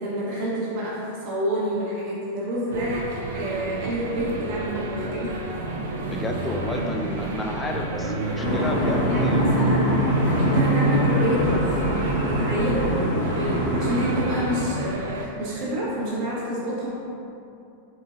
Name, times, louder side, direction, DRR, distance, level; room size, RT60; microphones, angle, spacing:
voice 1, 0.0-5.3 6.8-6.9 8.0-8.7 9.1-9.9 10.4-11.8 12.2-16.9, equal, 45° right, -6 dB, 0.8 m, -28 dB
sound 1, 2.7-15.3, right 2 dB, 60° right, 0.4 m, -31 dB
voice 2, 6.0-9.6, left 2 dB, 15° left, 1 dB, 0.4 m, -31 dB
sound 2, 8.4-14.6, equal, 50° left, 0.8 m, -23 dB
4.1 x 3.7 x 2.4 m, 2.7 s
figure-of-eight pair, 90°, 0 cm